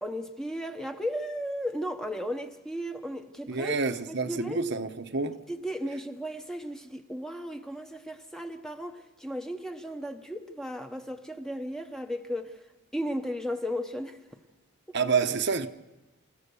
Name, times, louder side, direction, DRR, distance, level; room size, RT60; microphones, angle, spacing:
voice 1, 0.0-3.7 4.1-4.6 5.5-12.6 12.9-14.2 14.9-15.0, equal, ahead, 0.9 m, -35 dB
voice 2, 3.5-5.4 14.9-15.7, right 4 dB, 50° right, 0.9 m, -28 dB
28.5 x 13.5 x 6.9 m
head